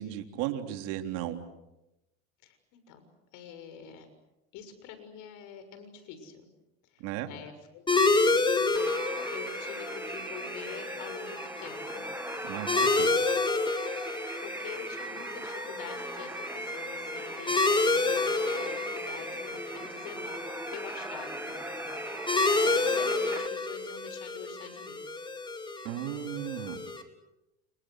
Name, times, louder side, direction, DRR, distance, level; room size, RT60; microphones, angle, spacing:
voice 1, 0.0-1.4 7.0-7.3 12.4-13.1 25.8-26.8, right 13 dB, 70° right, 5 dB, 3.6 m, -35 dB
voice 2, 2.4-3.1 3.3-4.1 4.5-6.5 6.9-12.1 12.7-13.0 14.0-21.6 21.9-25.0, left 7 dB, 65° left, 9 dB, 6.6 m, -46 dB
sound 1, 7.9-27.0, left 3 dB, 15° left, 3.5 m, -30 dB
freaky synthish, 8.7-23.5, right 2 dB, 5° right, 1.2 m, -40 dB
29.5 x 29.5 x 6.5 m, 0.94 s
supercardioid pair, 100°, 33 cm